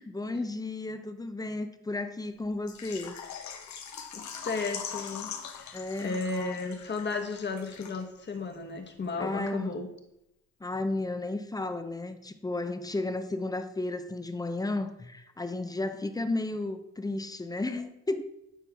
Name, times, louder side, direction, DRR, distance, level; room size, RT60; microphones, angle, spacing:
voice 1, 0.0-3.2 5.7-6.6 9.2-9.7 10.6-18.2, left 2 dB, 10° left, 9 dB, 0.6 m, -33 dB
Water / Liquid, 2.7-8.3 8.5-8.6 9.1-9.2, left 7 dB, 65° left, 1.0 m, -42 dB
voice 2, 4.3-9.9, left 4 dB, 35° left, 5 dB, 1.3 m, -34 dB
11.0 x 4.5 x 3.5 m, 0.84 s
cardioid pair, 90°, 30 cm